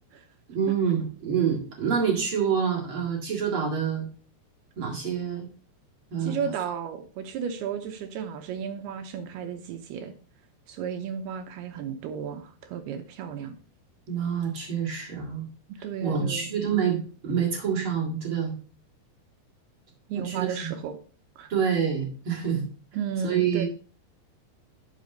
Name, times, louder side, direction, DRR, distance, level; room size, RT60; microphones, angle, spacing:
voice 1, 0.5-4.1 4.8-5.5 6.1-6.5 14.1-15.5 16.0-18.5 20.2-20.7 21.5-22.7 23.2-23.6, right 7 dB, 45° right, -1 dB, 2.0 m, -27 dB
voice 2, 6.2-10.1 10.7-13.5 15.8-16.5 20.1-21.0 21.4-21.5 22.9-23.6, right 7 dB, 80° right, 7 dB, 2.6 m, -33 dB
10.5 x 5.9 x 4.0 m, 0.40 s
omnidirectional pair, 4.9 m